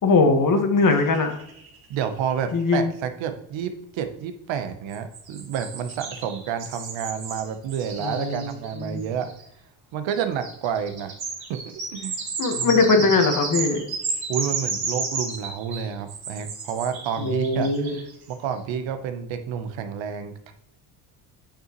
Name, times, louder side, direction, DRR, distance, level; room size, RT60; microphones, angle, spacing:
voice 1, 0.0-1.3 2.5-2.9 8.0-8.5 8.8-9.0 12.4-13.8 17.2-17.9, left 3 dB, 40° left, 5 dB, 1.5 m, -20 dB
sound 1, 0.9-1.9 2.3-2.4 2.6-2.7 4.9-9.4 10.1-18.3, right 4 dB, 50° right, 2.1 m, -33 dB
voice 2, 1.9-9.3 9.9-11.1 11.5-12.2 12.6-12.8 14.3-20.5, right 8 dB, 70° right, 8 dB, 1.0 m, -30 dB
8.7 x 5.6 x 3.0 m, 0.77 s
cardioid pair, 90°, 47 cm